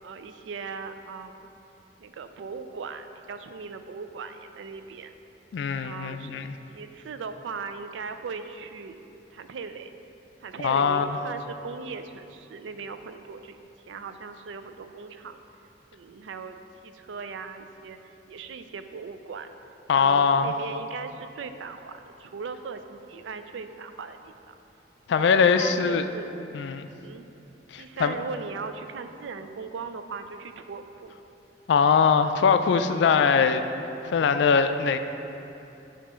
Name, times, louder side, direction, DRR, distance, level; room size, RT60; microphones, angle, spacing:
voice 1, 0.0-1.5 2.0-5.1 5.8-6.3 6.7-9.0 9.3-9.9 10.4-13.6 13.9-15.4 15.9-19.5 19.9-24.5 25.2-26.4 27.0-27.3 27.8-31.1, right 5 dB, 90° right, 9 dB, 0.4 m, -38 dB
voice 2, 5.5-6.6 10.6-11.2 19.9-20.5 25.1-26.0 26.5-26.9 27.7-28.1 31.7-33.6 34.1-35.0, left 6 dB, 75° left, 9 dB, 0.3 m, -22 dB
8.3 x 2.9 x 5.5 m, 2.9 s
head